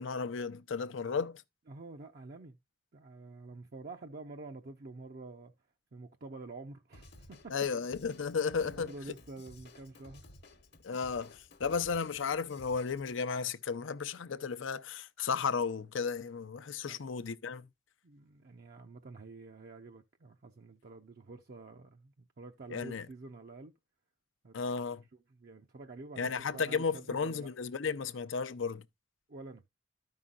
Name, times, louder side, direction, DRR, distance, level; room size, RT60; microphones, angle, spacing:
voice 1, 0.0-1.4 7.5-8.9 10.8-17.7 22.7-23.1 24.5-25.0 26.2-28.8, left 5 dB, 80° left, 0.6 m, -34 dB
voice 2, 1.7-2.6 2.9-5.5 5.9-7.5 8.6-10.3 16.9-17.0 18.0-23.7 24.4-24.6 25.1-27.5 29.3-29.6, right 3 dB, 50° right, 0.6 m, -48 dB
Drum kit / Drum, 6.9-13.2, left 2 dB, 55° left, 1.0 m, -56 dB
13.0 x 5.6 x 2.4 m
head